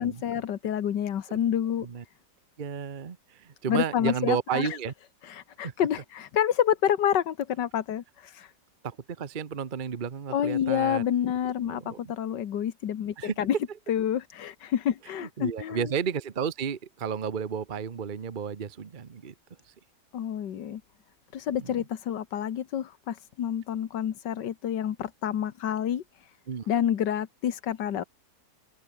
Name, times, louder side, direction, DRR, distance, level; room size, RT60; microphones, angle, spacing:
voice 1, 0.0-1.9 3.7-4.8 5.2-8.5 10.3-13.6 13.9-15.9 20.1-20.8 21.3-26.3 26.7-28.0, left 9 dB, 75° left, 1.8 m, -28 dB
voice 2, 2.6-4.9 5.6-5.7 8.8-11.0 11.7-12.1 13.2-13.4 15.2-19.3 21.6-21.8 26.5-26.7, right 7 dB, 35° right, 1.0 m, -32 dB
open air
omnidirectional pair, 1.9 m